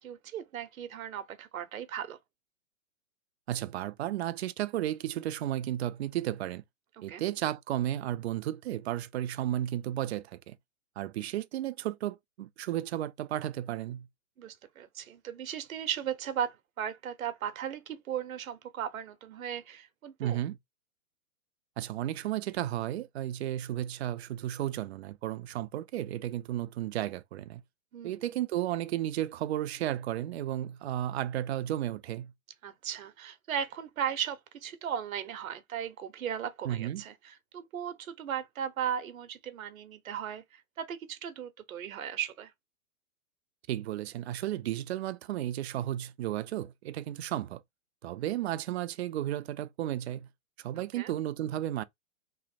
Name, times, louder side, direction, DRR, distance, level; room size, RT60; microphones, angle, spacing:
voice 1, 0.0-2.2 7.0-7.2 14.4-20.4 27.9-28.2 32.6-42.5 51.0-51.1, right 9 dB, 80° right, 0.9 m, -37 dB
voice 2, 3.5-6.6 7.0-10.6 11.0-14.1 20.2-20.6 21.8-27.6 28.0-32.3 36.6-37.0 43.7-47.6 48.0-50.3 50.6-51.8, right 12 dB, 55° right, 0.5 m, -33 dB
3.1 x 2.1 x 4.1 m
hypercardioid pair, 140°, 41 cm